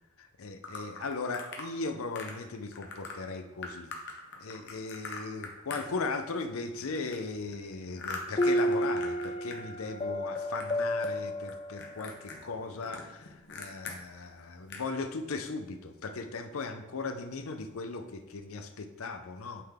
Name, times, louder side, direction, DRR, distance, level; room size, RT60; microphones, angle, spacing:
voice 1, 0.2-3.9 4.4-19.6, left 3 dB, 75° left, 7 dB, 0.6 m, -37 dB
sound 1, 0.6-1.7 2.1-2.4 2.7-3.1 3.6-6.4 6.7-9.6 9.9-10.8 11.0-11.5 11.8-14.0 14.4-14.5 14.7-14.9, left 4 dB, 55° left, 1.0 m, -42 dB
sound 2, 8.4-12.2, equal, 25° left, 0.3 m, -31 dB
8.4 x 3.9 x 3.5 m, 1.1 s
head